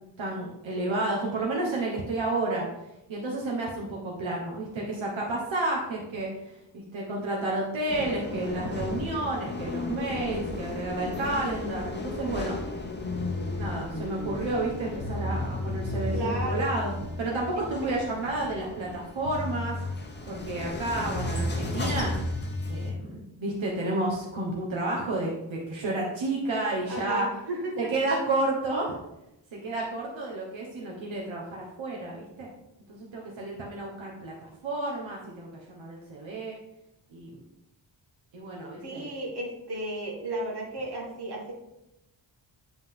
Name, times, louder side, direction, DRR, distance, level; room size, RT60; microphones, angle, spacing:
voice 1, 0.2-2.6 3.1-12.6 13.6-19.8 20.2-22.1 22.7-27.3 27.8-29.0 29.5-32.5 32.9-36.6 37.1-37.4 38.3-39.1, right 2 dB, 85° right, -2 dB, 1.3 m, -31 dB
sound 1, 7.9-22.9, left 2 dB, 25° left, 0.8 m, -36 dB
sound 2, 13.1-13.6 14.6-14.7 15.0-16.7 18.9-19.0 19.2-19.9 21.1-22.9, left 1 dB, 45° left, 1.3 m, -32 dB
voice 2, 16.1-16.7 17.9-18.0 26.9-27.9 38.8-41.5, right 1 dB, 55° right, -2 dB, 2.1 m, -33 dB
9.7 x 3.9 x 3.6 m, 0.89 s
wide cardioid pair, 140°, 45 cm